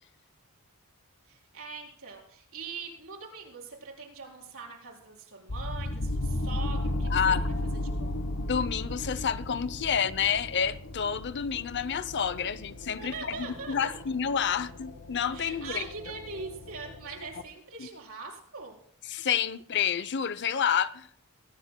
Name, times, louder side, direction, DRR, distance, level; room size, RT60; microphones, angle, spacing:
voice 1, 1.2-8.2 12.9-14.0 15.3-18.8, right 4 dB, 65° right, 4.5 m, -42 dB
sound 1, 5.5-17.4, left 1 dB, 80° left, 1.3 m, -35 dB
voice 2, 7.1-7.5 8.4-15.9 17.8-17.9 19.1-21.1, left 7 dB, 55° left, 0.6 m, -29 dB
24.0 x 17.5 x 2.2 m
head